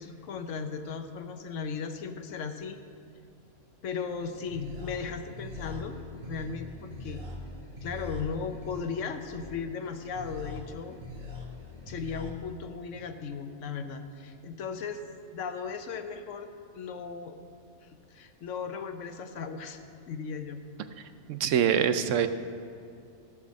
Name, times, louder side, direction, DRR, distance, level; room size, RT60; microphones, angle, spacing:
voice 1, 0.0-2.8 3.8-6.0 6.3-7.2 7.8-11.0 11.9-15.0 15.3-16.5 16.7-17.4 17.8-19.8 20.1-20.6, left 5 dB, 75° left, 8 dB, 1.1 m, -36 dB
sound 1, 4.1-12.3, left 1 dB, 35° right, 1.5 m, -42 dB
voice 2, 21.3-22.3, right 8 dB, 75° right, 10 dB, 1.0 m, -24 dB
15.0 x 6.0 x 6.4 m, 2.3 s
omnidirectional pair, 1.3 m